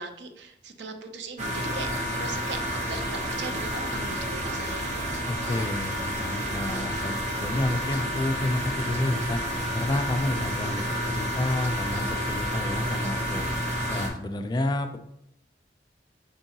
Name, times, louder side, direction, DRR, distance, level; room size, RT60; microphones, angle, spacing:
voice 1, 0.0-4.9, right 3 dB, 80° right, 6 dB, 0.6 m, -39 dB
sound 1, 1.4-14.1, equal, 40° right, 0.8 m, -30 dB
voice 2, 5.3-9.4 9.7-13.5 13.9-15.0, left 1 dB, 25° left, 7 dB, 0.3 m, -30 dB
5.2 x 3.7 x 2.8 m, 0.78 s
head